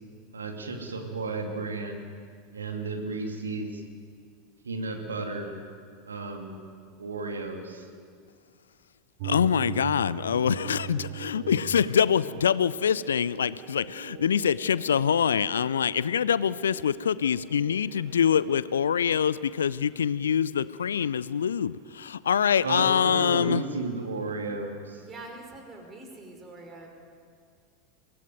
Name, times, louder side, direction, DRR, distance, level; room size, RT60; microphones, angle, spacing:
voice 1, 0.3-2.0 2.5-3.8 4.6-5.6 6.0-6.6 7.0-7.9 22.6-25.0, right 3 dB, 75° right, 3 dB, 2.6 m, -33 dB
voice 2, 9.2-11.0 11.3-23.6, left 8 dB, 70° left, 19 dB, 0.5 m, -25 dB
sound 1, 9.2-18.6, right 10 dB, 50° right, 1.1 m, -41 dB
voice 3, 24.9-26.9, right 2 dB, 25° right, 3 dB, 5.5 m, -44 dB
24.0 x 18.5 x 9.3 m, 2.1 s
figure-of-eight pair, 85°, 0 cm